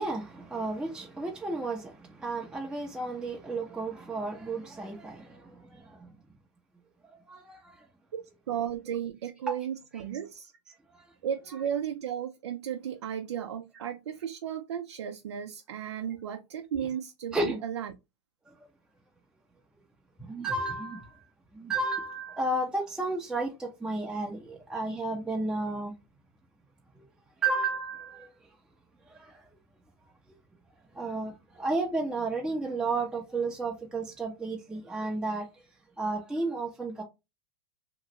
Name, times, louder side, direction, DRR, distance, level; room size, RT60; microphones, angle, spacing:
voice 1, 0.0-6.1 7.3-7.9 9.5-9.6 10.9-11.1 17.3-17.6 18.5-18.6 20.2-21.2 21.5-25.9 27.4-28.3 29.1-29.4 30.9-35.5 36.0-37.0, right 2 dB, 5° right, 0.6 m, -32 dB
voice 2, 8.5-10.5 11.2-17.9, right 9 dB, 80° right, 0.4 m, -34 dB
2.9 x 2.4 x 2.9 m
hypercardioid pair, 105°, 14 cm